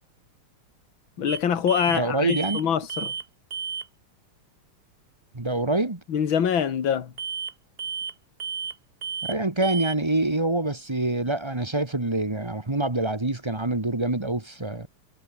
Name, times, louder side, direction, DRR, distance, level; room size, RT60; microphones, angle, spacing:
voice 1, 1.2-3.1 6.1-7.1, left 8 dB, 65° left, 2.7 m, -24 dB
sound 1, 1.3-1.4 1.7-2.0 2.3-2.6 2.9-3.2 3.5-3.9 7.2-7.5 7.8-8.1 8.4-8.7 9.0-9.4 9.6-9.9, right 6 dB, 40° right, 0.9 m, -32 dB
voice 2, 1.9-2.6 5.3-6.0 9.2-14.9, right 2 dB, 15° right, 1.4 m, -26 dB
omnidirectional pair, 2.4 m